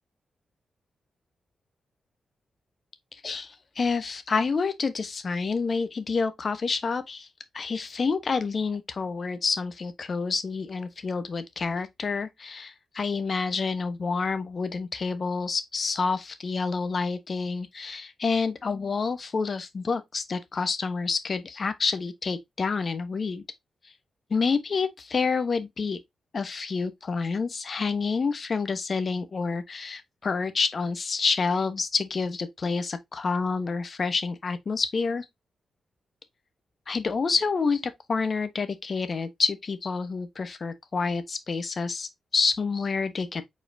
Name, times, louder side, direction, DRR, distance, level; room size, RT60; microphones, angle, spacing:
voice 1, 3.2-7.3 7.5-23.4 24.3-26.0 26.3-35.3 36.9-43.4, left 4 dB, 55° left, 0.9 m, -28 dB
4.8 x 4.1 x 2.6 m
supercardioid pair, 40°, 0 cm